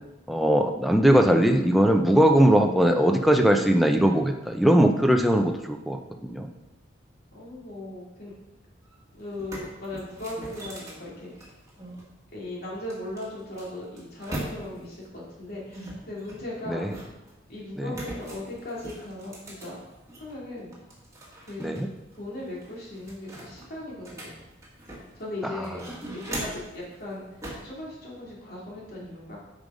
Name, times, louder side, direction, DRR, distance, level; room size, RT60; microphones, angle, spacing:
voice 1, 0.3-6.5 16.7-16.9 17.8-17.9 21.6-21.9, equal, ahead, 3 dB, 0.6 m, -20 dB
voice 2, 7.3-8.3 9.1-11.3 12.3-16.9 17.5-19.8 20.2-20.7 21.4-21.8 22.1-24.3 25.2-25.9 26.1-29.4, left 1 dB, 50° left, -4 dB, 2.6 m, -38 dB
sound 1, 8.8-8.9 9.3-12.0 12.9-14.9 15.7-17.3 17.9-20.3 20.7-21.8 22.1-22.2 22.6-25.2 25.6-26.8 27.4-27.7, right 1 dB, 15° right, 1.7 m, -40 dB
7.9 x 5.2 x 4.9 m, 0.98 s
head